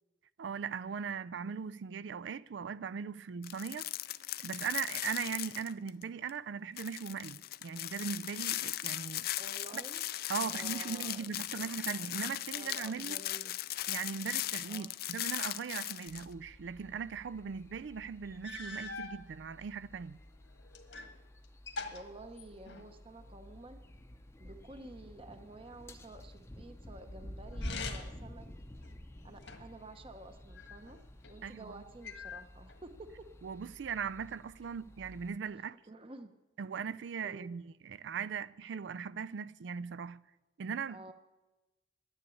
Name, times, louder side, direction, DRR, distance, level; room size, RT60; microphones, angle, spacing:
voice 1, 0.4-3.9 4.4-9.3 9.7-9.8 10.3-13.2 13.9-20.2 31.4-31.8 33.4-35.8 36.6-40.2 40.6-41.0, right 6 dB, 80° right, 0.4 m, -39 dB
sound 1, 3.4-6.0 6.3-6.4 6.8-16.2, left 14 dB, 55° left, 0.4 m, -38 dB
voice 2, 9.4-10.1 10.5-11.6 12.5-13.6 14.7-14.9 21.9-23.8 24.4-28.5 29.2-31.0 31.3-33.3 35.9-36.3 37.2-37.5 40.9-41.1, right 2 dB, 30° right, 0.8 m, -51 dB
sound 2, 16.1-35.4, left 1 dB, 15° left, 0.6 m, -50 dB
sound 3, 17.8-17.9 18.4-19.2 20.0-21.2 21.4-23.0 27.5-28.3 28.8-29.8 30.6-31.4 32.0-32.8, left 4 dB, 80° left, 1.5 m, -44 dB
11.0 x 9.9 x 8.4 m
head